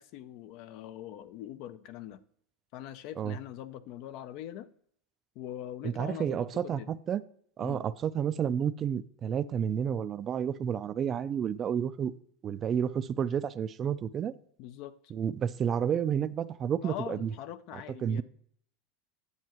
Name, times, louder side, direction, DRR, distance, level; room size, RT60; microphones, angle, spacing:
voice 1, 0.0-2.2 2.7-4.7 5.4-6.9 7.6-7.8 14.6-14.9 16.8-18.2, left 12 dB, 60° left, 0.6 m, -42 dB
voice 2, 5.8-7.2 7.6-12.1 12.4-14.3 15.1-17.3 17.7-18.2, right 8 dB, 35° right, 0.4 m, -30 dB
9.6 x 8.1 x 3.0 m
supercardioid pair, 115°, 0 cm